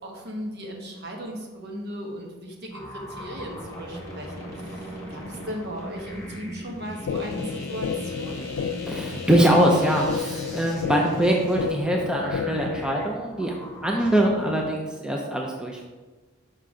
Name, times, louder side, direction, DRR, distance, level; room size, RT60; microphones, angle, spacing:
voice 1, 0.0-8.4, equal, 55° right, 1 dB, 1.1 m, -37 dB
sound 1, 2.7-14.6, equal, 15° left, 1.6 m, -39 dB
sound 2, 7.1-13.1, left 6 dB, 70° left, 0.3 m, -31 dB
voice 2, 8.9-13.5 13.8-15.9, right 1 dB, 5° right, -1 dB, 0.5 m, -23 dB
5.6 x 4.0 x 4.8 m, 1.3 s
head